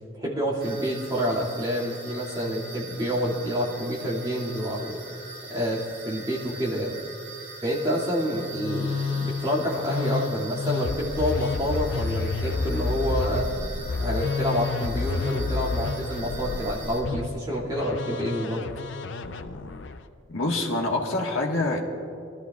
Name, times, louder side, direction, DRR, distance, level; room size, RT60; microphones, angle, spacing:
voice 1, 0.1-5.0 5.5-7.0 7.6-13.5 14.0-18.6, equal, 20° right, -5 dB, 2.2 m, -28 dB
sound 1, 0.6-17.0, right 2 dB, 50° right, 3.5 m, -42 dB
Musical instrument, 8.2-20.0, left 4 dB, 65° left, 0.5 m, -30 dB
voice 2, 20.3-21.8, left 2 dB, 80° left, 0 dB, 1.5 m, -26 dB
22.0 x 13.0 x 2.4 m, 2.5 s
head